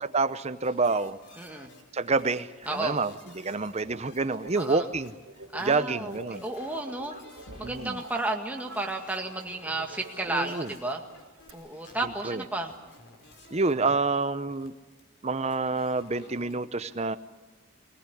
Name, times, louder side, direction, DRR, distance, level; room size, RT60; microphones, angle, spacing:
voice 1, 0.0-1.2 1.9-5.1 5.6-6.4 7.6-8.0 10.3-10.7 12.2-12.4 13.5-14.7 15.2-17.2, right 3 dB, 30° right, 12 dB, 0.7 m, -28 dB
sound 1, 0.6-1.8 2.1-16.5, left 2 dB, 50° left, 4.3 m, -53 dB
voice 2, 1.4-1.7 2.7-3.0 4.6-4.9 5.5-7.2 7.6-11.0 11.5-12.7, right 2 dB, 5° right, 1 dB, 1.9 m, -32 dB
sound 2, 3.1-11.5, right 2 dB, 75° right, 3.5 m, -47 dB
sound 3, 7.3-8.0 9.7-9.8 11.7-11.8 12.7-12.8, equal, 85° left, 4.4 m, -49 dB
23.5 x 18.5 x 10.0 m, 1.2 s
head